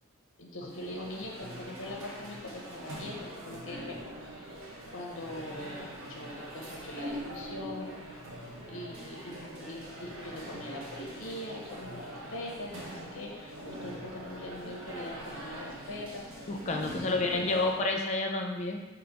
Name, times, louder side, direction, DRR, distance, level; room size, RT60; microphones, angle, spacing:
voice 1, 0.4-4.0 4.9-8.0 8.4-17.8, left 1 dB, 80° left, -1 dB, 0.6 m, -42 dB
sound 1, 0.6-17.9, equal, 90° right, 0.8 m, -43 dB
voice 2, 16.5-18.8, left 2 dB, 35° left, 2 dB, 0.3 m, -30 dB
3.8 x 2.0 x 4.4 m, 1.1 s
head